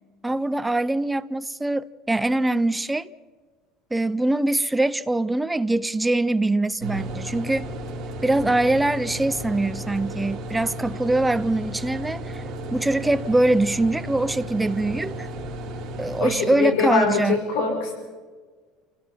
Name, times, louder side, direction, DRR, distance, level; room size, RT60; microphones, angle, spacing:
voice 1, 0.2-3.1 3.9-7.7 8.2-12.4 12.7-15.3 16.0-17.4, right 2 dB, 5° right, 0.5 m, -23 dB
sound 1, 6.8-16.2, right 1 dB, 30° right, 4.5 m, -34 dB
voice 2, 16.2-17.9, left 4 dB, 75° left, 4.8 m, -23 dB
28.0 x 17.0 x 5.7 m
cardioid pair, 175°, 0 cm